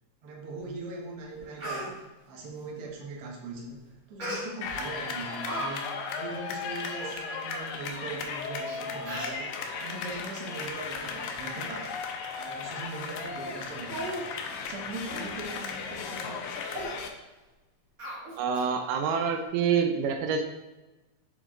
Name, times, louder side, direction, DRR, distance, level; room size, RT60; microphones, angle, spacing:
voice 1, 0.2-12.0 12.3-14.2 14.6-16.5, right 3 dB, 60° right, -1 dB, 1.8 m, -40 dB
Speech, 0.9-1.0 1.3-1.9 4.2-4.7 5.2-5.7 6.0-6.1 6.7-6.8 7.0-7.2 7.9-8.0 8.7-8.8 9.0-9.4 10.1-10.3 10.7-11.4 11.7-11.9 12.3-12.4 12.9-13.1 13.4-13.5 13.8-14.2 14.6-14.7 15.1-15.3 15.6-15.8 16.2-16.3 16.7-16.9 18.0-18.7 19.0-19.1, right 1 dB, 30° right, 1.9 m, -38 dB
sound 1, 4.6-17.1, left 5 dB, 85° left, 2.3 m, -36 dB
voice 2, 18.4-20.4, right 6 dB, 85° right, 5 dB, 2.2 m, -26 dB
6.4 x 4.8 x 3.6 m, 1.1 s
omnidirectional pair, 3.8 m